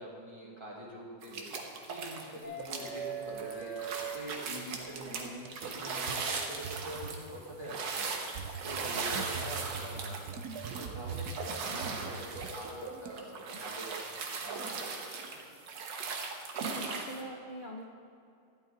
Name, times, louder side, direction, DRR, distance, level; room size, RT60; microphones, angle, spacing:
voice 1, 0.0-1.5 1.8-10.2 10.5-15.2, right 1 dB, 15° right, -5 dB, 2.4 m, -45 dB
sound 1, 1.2-2.3 2.6-17.2, right 4 dB, 85° right, 1.8 m, -38 dB
sound 2, 2.4-4.8 6.5-6.6 8.4-8.6, right 6 dB, 25° left, 3.6 m, -40 dB
sound 3, 2.4-2.7 3.4-3.7 4.0-4.2 4.4-4.5 4.8-6.2 6.6-7.2 7.5-7.8 8.3-11.4 11.8-13.1, right 5 dB, 65° right, 1.2 m, -43 dB
voice 2, 16.7-17.9, equal, 40° left, -1 dB, 0.7 m, -43 dB
12.5 x 11.5 x 4.0 m, 2.6 s
omnidirectional pair, 1.9 m